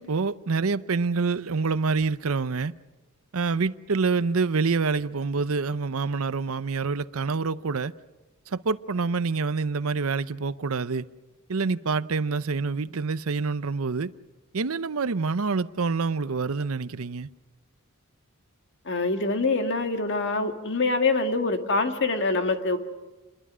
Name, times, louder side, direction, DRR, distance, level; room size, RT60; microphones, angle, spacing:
voice 1, 0.0-2.7 3.3-7.9 8.5-11.1 11.5-14.1 14.5-17.3, right 4 dB, 75° right, 0.7 m, -26 dB
voice 2, 18.9-22.8, left 3 dB, 55° left, 2.0 m, -25 dB
28.0 x 22.0 x 6.3 m
head